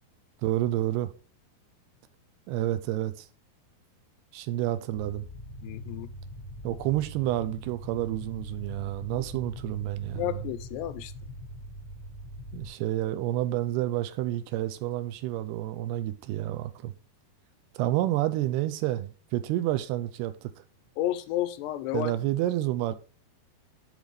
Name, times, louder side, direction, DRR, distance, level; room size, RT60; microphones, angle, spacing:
voice 1, 0.4-1.1 2.5-3.3 4.3-5.2 6.6-10.4 12.5-16.9 17.8-20.5 21.9-22.9, right 14 dB, 80° right, 2.6 m, -29 dB
sound 1, 4.9-12.7, equal, 45° left, 1.1 m, -43 dB
voice 2, 5.6-6.1 10.2-11.1 21.0-22.1, left 14 dB, 85° left, 2.8 m, -31 dB
10.5 x 4.1 x 4.8 m
omnidirectional pair, 4.8 m